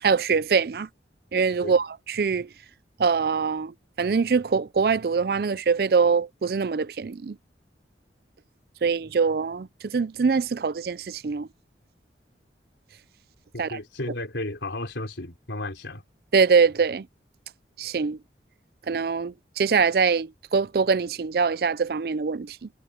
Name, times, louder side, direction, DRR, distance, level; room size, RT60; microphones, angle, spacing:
voice 1, 0.0-0.9 1.3-2.5 3.0-7.4 8.8-11.5 13.6-13.8 16.3-17.1 17.8-18.2 18.9-22.7, right 5 dB, 55° right, 0.4 m, -23 dB
voice 2, 13.5-16.0, left 2 dB, 85° left, 3.8 m, -33 dB
head